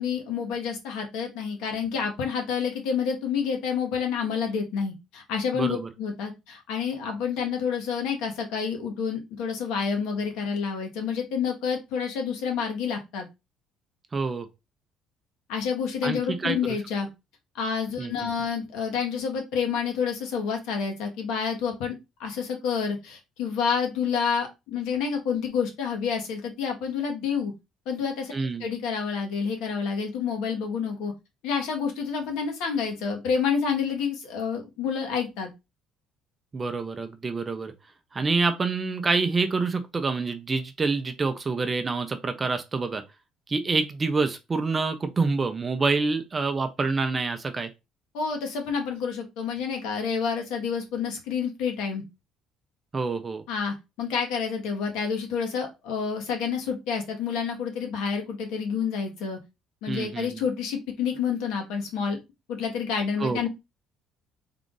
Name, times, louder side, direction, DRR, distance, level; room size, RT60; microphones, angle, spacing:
voice 1, 0.0-13.3 15.5-17.1 17.5-27.5 27.8-31.1 31.4-35.5 48.1-52.0 53.5-59.4 59.8-62.2 62.5-63.5, left 6 dB, 85° left, 1.3 m, -29 dB
voice 2, 5.5-5.9 14.1-14.5 16.0-16.6 18.0-18.1 28.3-28.6 36.5-37.7 38.1-43.0 43.5-47.7 52.9-53.4 59.9-60.4 63.2-63.5, right 4 dB, 20° right, 0.4 m, -27 dB
3.6 x 2.4 x 3.8 m
cardioid pair, 175°, 0 cm